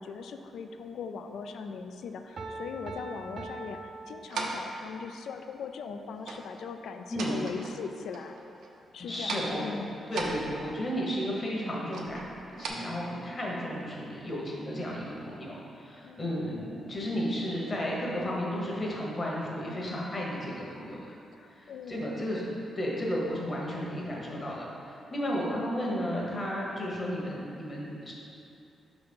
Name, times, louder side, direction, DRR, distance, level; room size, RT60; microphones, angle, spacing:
voice 1, 0.0-8.4 8.9-10.0 16.0-16.4 21.4-22.1, left 5 dB, 80° left, 7 dB, 0.3 m, -40 dB
Piano, 2.4-4.9, right 2 dB, 40° right, 0.4 m, -42 dB
sound 1, 4.3-4.8 6.2-6.5 6.9-7.9 8.1-8.8 9.2-9.6 10.1-10.9 11.9-12.7, right 3 dB, 85° right, 0.7 m, -38 dB
voice 2, 7.1-7.4 9.0-9.8 10.1-12.2 12.5-21.1 21.5-22.5 22.8-28.1, equal, 25° left, -4 dB, 1.1 m, -33 dB
5.6 x 4.1 x 5.2 m, 2.7 s
wide cardioid pair, 165°, 0 cm